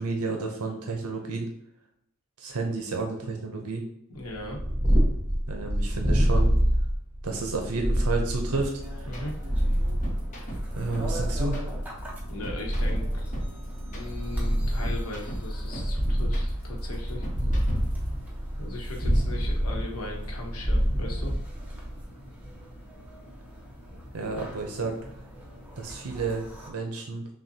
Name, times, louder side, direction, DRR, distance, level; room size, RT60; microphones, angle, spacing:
voice 1, 0.0-1.5 2.4-3.8 5.5-6.5 7.2-8.7 9.0-9.1 10.8-11.7 24.1-25.0 25.8-27.3, right 3 dB, 70° right, 2 dB, 0.6 m, -31 dB
voice 2, 4.1-4.6 9.1-9.4 12.3-13.3 13.9-17.3 18.6-21.3 24.2-24.3, left 2 dB, 70° left, 0 dB, 1.0 m, -38 dB
Purr, 4.3-22.0, equal, 25° right, 1.2 m, -27 dB
sound 1, 8.5-18.1, right 1 dB, 35° left, 1.0 m, -39 dB
sound 2, 8.8-26.7, equal, 5° right, 0.9 m, -44 dB
6.0 x 2.3 x 2.7 m, 0.77 s
head